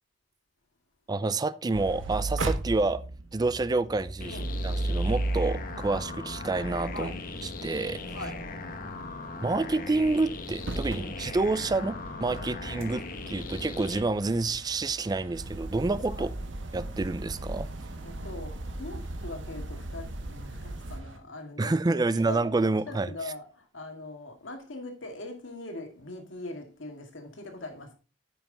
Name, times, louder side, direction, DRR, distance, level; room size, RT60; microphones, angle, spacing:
voice 1, 1.1-3.0 3.3-4.4 4.6-7.1 7.6-8.0 9.4-16.3 16.7-17.7 21.6-23.1, right 3 dB, 20° right, 0.4 m, -28 dB
sound 1, 1.7-21.2, right 2 dB, 85° right, 1.3 m, -37 dB
sound 2, 4.2-14.0, left 3 dB, 50° left, 1.1 m, -39 dB
sound 3, 15.3-21.0, right 1 dB, 70° right, 1.0 m, -39 dB
voice 2, 18.0-27.9, left 2 dB, 85° left, 2.0 m, -41 dB
9.0 x 5.8 x 3.8 m
head